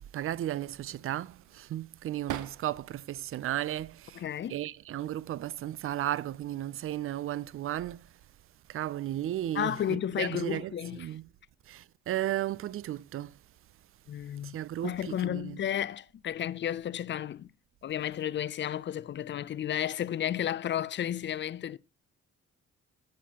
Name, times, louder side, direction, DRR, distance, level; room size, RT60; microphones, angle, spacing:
voice 1, 0.1-4.2 4.5-8.0 8.7-11.2 11.7-13.3 14.4-15.6, right 13 dB, 45° right, 0.4 m, -34 dB
sound 1, 0.5-3.0 3.5-4.3 5.2-5.6 5.9-6.7, right 12 dB, 75° right, 0.7 m, -45 dB
voice 2, 4.1-4.6 9.5-11.1 14.1-14.6 14.8-17.5 17.8-21.8, left 10 dB, 40° left, 0.4 m, -32 dB
13.0 x 7.3 x 2.8 m
cardioid pair, 90°, 30 cm